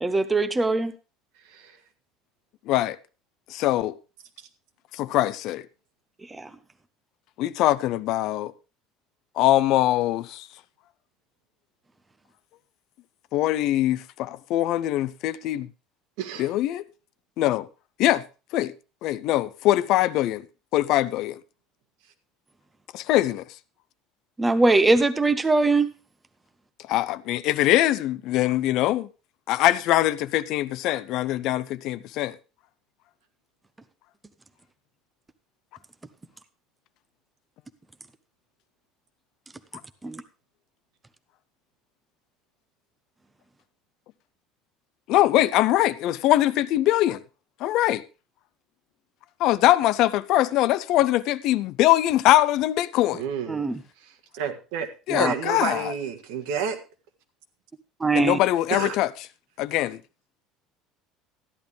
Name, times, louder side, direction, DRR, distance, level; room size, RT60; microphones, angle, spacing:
voice 1, 0.0-0.9 6.3-6.5 24.4-25.9 40.0-40.2 53.5-53.8 55.1-55.3 58.0-58.4, right 3 dB, 10° right, 0.6 m, -21 dB
voice 2, 2.7-3.0 3.5-3.9 4.9-5.6 7.4-8.5 9.4-10.5 13.3-15.7 16.4-16.8 17.4-17.7 18.0-18.2 18.5-18.7 19.0-20.4 20.7-21.4 22.9-23.4 26.9-29.1 29.5-32.4 45.1-47.2 47.6-48.0 49.4-53.2 55.1-55.9 58.1-59.1 59.6-60.0, left 14 dB, 50° left, 0.5 m, -22 dB
voice 3, 16.2-16.5 53.2-53.6 54.0-54.9 55.1-56.8 58.7-59.0, right 7 dB, 75° right, 1.7 m, -30 dB
13.5 x 10.5 x 3.4 m
cardioid pair, 170°, 0 cm